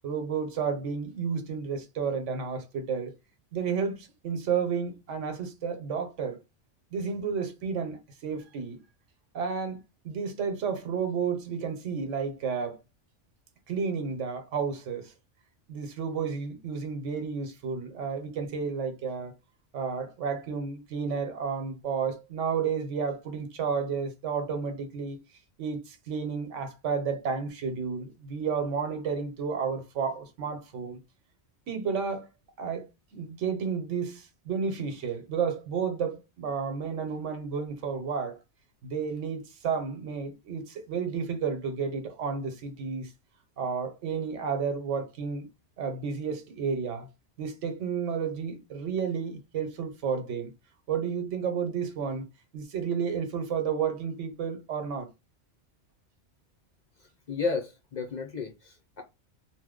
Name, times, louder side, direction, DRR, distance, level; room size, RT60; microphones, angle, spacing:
voice 1, 0.0-3.1 3.5-6.4 6.9-8.8 9.3-12.8 13.7-15.1 15.7-19.3 19.7-25.2 25.6-31.0 31.7-32.3 32.6-38.4 38.8-43.1 43.6-45.5 45.8-47.1 47.4-50.5 50.9-52.2 52.5-55.1, right 6 dB, 85° right, 1.1 m, -31 dB
voice 2, 57.3-59.0, left 4 dB, 55° left, 0.5 m, -32 dB
2.9 x 2.0 x 3.5 m
omnidirectional pair, 1.2 m